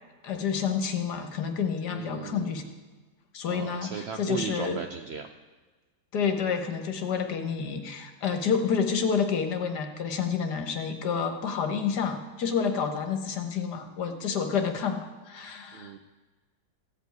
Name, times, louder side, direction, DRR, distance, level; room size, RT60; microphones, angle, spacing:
voice 1, 0.2-2.6 3.3-4.8 6.1-15.9, left 6 dB, 70° left, 6 dB, 1.8 m, -29 dB
voice 2, 1.9-2.6 3.5-5.3 15.7-16.0, right 6 dB, 60° right, 6 dB, 0.6 m, -36 dB
15.5 x 5.3 x 9.3 m, 1.3 s
omnidirectional pair, 1.9 m